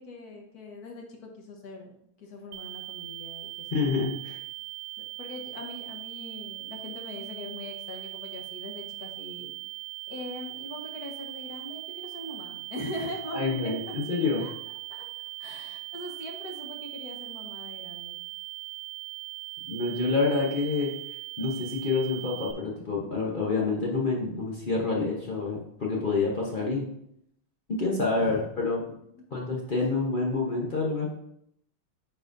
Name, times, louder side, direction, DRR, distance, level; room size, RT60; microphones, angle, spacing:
voice 1, 0.0-1.9 2.2-4.0 5.0-9.5 10.1-13.9 14.4-14.5 14.9-15.1 15.4-18.2 28.1-28.4, left 1 dB, 50° left, 1 dB, 1.4 m, -41 dB
sound 1, 2.5-22.5, right 23 dB, 75° right, 1.3 m, -40 dB
voice 2, 3.7-4.4 13.3-14.5 19.7-20.9 21.4-26.9 27.7-28.8 29.3-31.1, left 3 dB, 85° left, -3 dB, 0.4 m, -27 dB
8.9 x 4.8 x 2.6 m, 0.74 s
omnidirectional pair, 2.4 m